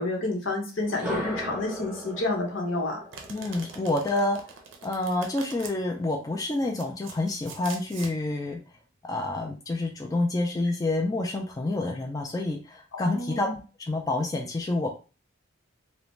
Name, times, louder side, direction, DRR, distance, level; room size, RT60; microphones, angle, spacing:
voice 1, 0.0-3.1 12.9-13.5, left 2 dB, 70° left, 1 dB, 0.8 m, -29 dB
sound 1, 0.8-4.8, equal, 5° right, 0.8 m, -37 dB
Domestic sounds home sounds, 3.1-5.8 6.5-8.1, right 5 dB, 70° right, 0.5 m, -44 dB
voice 2, 3.3-4.4 4.8-8.6 9.0-13.5 13.9-14.9, left 2 dB, 15° left, 0 dB, 0.3 m, -28 dB
2.5 x 2.1 x 3.1 m, 0.34 s
head